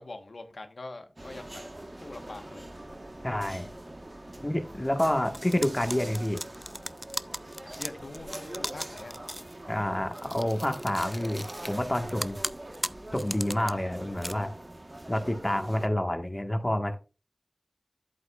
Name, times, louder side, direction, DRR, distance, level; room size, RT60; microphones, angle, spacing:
voice 1, 0.0-1.6 2.0-2.6 7.6-9.2, left 2 dB, 90° left, 1.2 m, -43 dB
sound 1, 1.2-15.9, right 1 dB, 40° right, 1.2 m, -43 dB
voice 2, 3.2-3.7 4.4-6.4 9.7-12.4 13.1-14.5 15.1-17.0, left 1 dB, 20° left, 1.4 m, -28 dB
sound 2, 5.3-9.5 10.1-11.8 12.1-13.7 14.1-14.3, equal, ahead, 0.4 m, -37 dB
11.0 x 8.3 x 2.4 m
wide cardioid pair, 60°, 0 cm